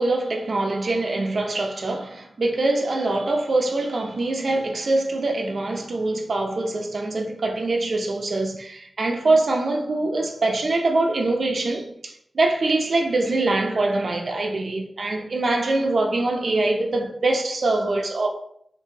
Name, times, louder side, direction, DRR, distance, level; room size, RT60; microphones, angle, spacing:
voice 1, 0.0-18.3, right 2 dB, 70° right, 0.5 m, -23 dB
2.8 x 2.6 x 2.6 m
cardioid pair, 45°, 0 cm